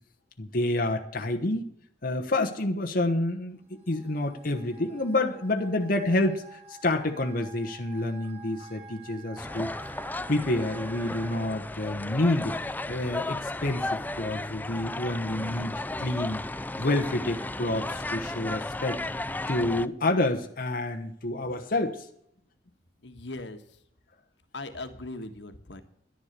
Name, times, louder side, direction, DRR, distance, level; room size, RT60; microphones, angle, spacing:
voice 1, 0.4-1.7 2.0-9.7 10.3-16.5 16.8-19.0 19.5-22.1, left 2 dB, 55° left, 3 dB, 1.1 m, -28 dB
sound 1, 3.7-11.5, right 3 dB, 35° right, 2.8 m, -49 dB
sound 2, 9.4-19.9, left 2 dB, 10° left, 0.4 m, -34 dB
voice 2, 23.0-23.8 24.5-25.8, left 2 dB, 85° left, 8 dB, 1.4 m, -39 dB
11.5 x 10.5 x 6.7 m, 0.71 s
head